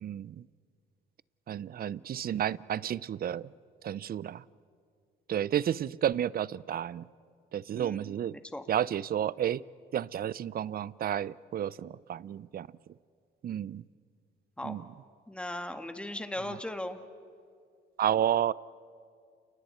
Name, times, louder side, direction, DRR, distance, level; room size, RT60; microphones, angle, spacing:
voice 1, 0.0-0.4 1.5-3.5 3.8-4.4 5.3-7.0 7.5-8.4 8.7-9.6 9.9-12.7 13.4-13.8 14.6-14.8 16.5-16.6 18.0-18.5, right 10 dB, 50° right, 0.5 m, -31 dB
voice 2, 7.7-8.7 14.6-14.8 15.3-17.0, left 1 dB, 5° left, 1.6 m, -38 dB
30.0 x 29.0 x 4.4 m
cardioid pair, 90°, 20 cm